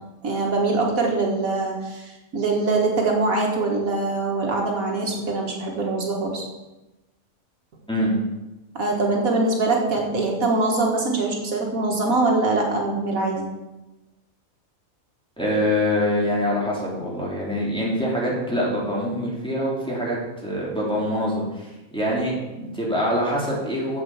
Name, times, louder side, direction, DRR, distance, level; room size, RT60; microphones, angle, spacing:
voice 1, 0.2-6.4 8.8-13.5, right 3 dB, 75° right, 0 dB, 2.0 m, -23 dB
voice 2, 15.4-24.0, equal, 5° left, -6 dB, 3.0 m, -25 dB
7.8 x 7.5 x 7.1 m, 1.0 s
omnidirectional pair, 1.5 m